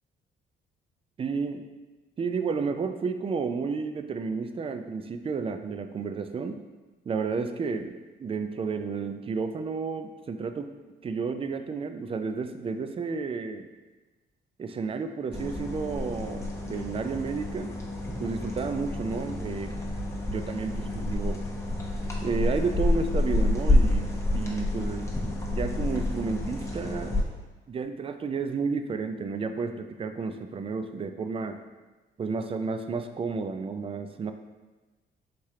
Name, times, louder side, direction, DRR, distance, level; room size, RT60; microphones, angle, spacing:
voice 1, 1.2-1.7 2.2-6.6 7.1-10.7 11.0-13.7 14.6-17.7 18.2-19.8 20.3-21.4 22.2-27.2 27.7-31.6 32.2-34.3, right 4 dB, 30° right, 8 dB, 0.4 m, -31 dB
sound 1, 15.3-27.2, left 1 dB, 15° left, 0.9 m, -29 dB
4.3 x 3.2 x 3.6 m, 1.2 s
cardioid pair, 90°, 20 cm